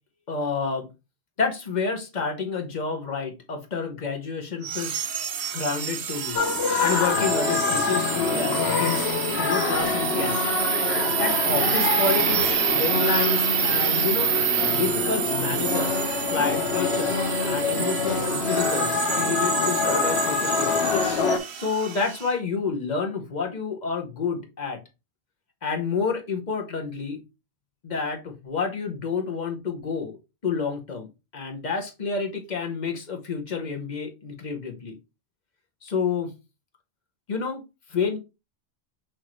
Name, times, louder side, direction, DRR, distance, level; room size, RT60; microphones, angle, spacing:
voice 1, 0.3-0.9 1.4-5.0 5.5-6.4 6.8-10.4 11.2-14.3 14.7-16.0 16.3-20.8 21.5-24.8 25.6-27.2 27.8-30.2 30.4-31.1 31.3-35.0 35.8-36.3 37.3-37.6 37.9-38.2, left 5 dB, 45° left, 3 dB, 1.0 m, -29 dB
sound 1, 4.6-22.3, right 8 dB, 65° right, 0.8 m, -27 dB
sound 2, 6.3-21.4, left 5 dB, 75° left, 1.0 m, -26 dB
6.1 x 2.7 x 3.0 m, 0.27 s
omnidirectional pair, 1.1 m